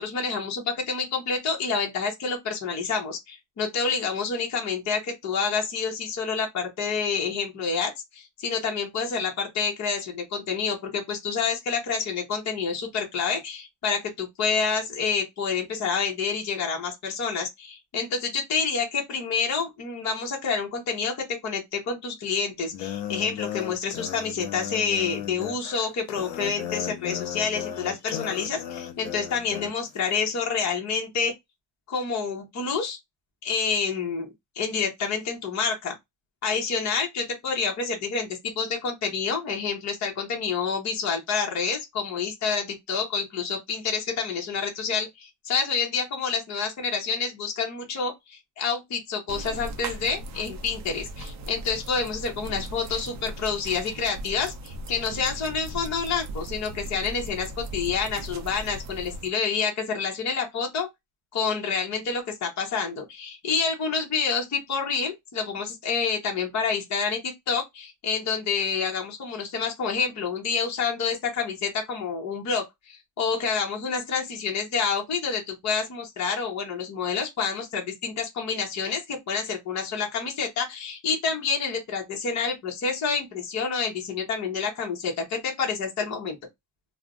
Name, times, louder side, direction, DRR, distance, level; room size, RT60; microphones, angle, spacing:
voice 1, 0.0-31.3 31.9-33.0 33.4-35.9 36.4-38.3 38.6-60.9 61.3-67.2 67.5-86.4, left 5 dB, 35° left, 0.8 m, -28 dB
sound 1, 22.7-29.7, left 10 dB, 75° left, 0.7 m, -35 dB
sound 2, 49.3-59.3, right 1 dB, 40° right, 0.4 m, -38 dB
2.4 x 2.0 x 3.6 m
cardioid pair, 155°, 49 cm